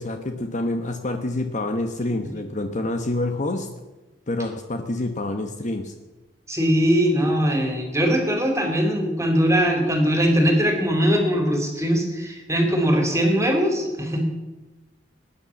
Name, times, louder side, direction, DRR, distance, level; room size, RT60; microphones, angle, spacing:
voice 1, 0.0-3.7 4.3-5.9, left 2 dB, 40° left, 6 dB, 1.1 m, -27 dB
voice 2, 6.5-14.3, equal, 15° right, 3 dB, 3.2 m, -21 dB
18.5 x 10.0 x 7.2 m, 1.1 s
head